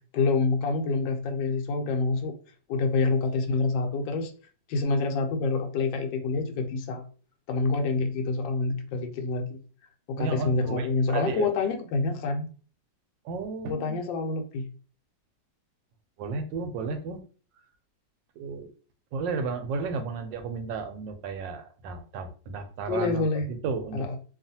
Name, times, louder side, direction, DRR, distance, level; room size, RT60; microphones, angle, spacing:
voice 1, 0.1-2.4 2.7-4.3 4.7-7.0 7.5-9.4 10.1-12.5 13.7-14.7 22.9-23.5 23.9-24.2, left 3 dB, 90° left, 4 dB, 1.3 m, -27 dB
voice 2, 10.2-11.5 13.2-14.0 16.2-17.2 18.4-18.7 19.1-24.2, right 4 dB, 85° right, 7 dB, 1.3 m, -33 dB
2.9 x 2.4 x 2.6 m, 0.40 s
omnidirectional pair, 1.9 m